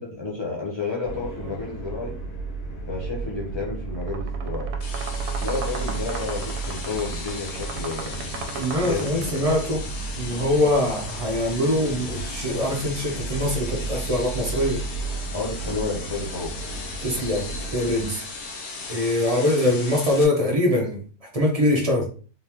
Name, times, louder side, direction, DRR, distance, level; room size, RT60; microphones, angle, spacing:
voice 1, 0.0-2.2 2.9-4.7 5.4-8.2 8.9-9.4 15.3-16.6, left 3 dB, 40° left, 0.4 m, -31 dB
sound 1, 1.0-18.1, right 3 dB, 65° left, 1.8 m, -33 dB
sound 2, 3.9-9.7, right 5 dB, 75° right, 1.1 m, -37 dB
sound 3, 4.8-20.2, left 4 dB, 85° left, 1.5 m, -37 dB
voice 2, 8.5-9.9 10.2-14.8 17.0-18.2 18.9-21.0 21.3-22.1, left 1 dB, 50° right, 0.4 m, -23 dB
3.9 x 3.5 x 2.9 m
omnidirectional pair, 1.8 m